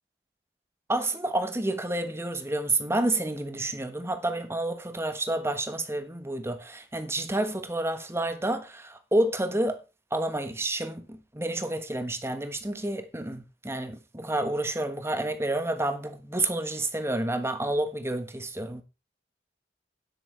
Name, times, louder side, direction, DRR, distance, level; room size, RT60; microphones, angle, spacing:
voice 1, 0.9-9.8 10.1-18.8, right 1 dB, 15° right, 1.3 m, -29 dB
10.0 x 8.4 x 4.5 m
head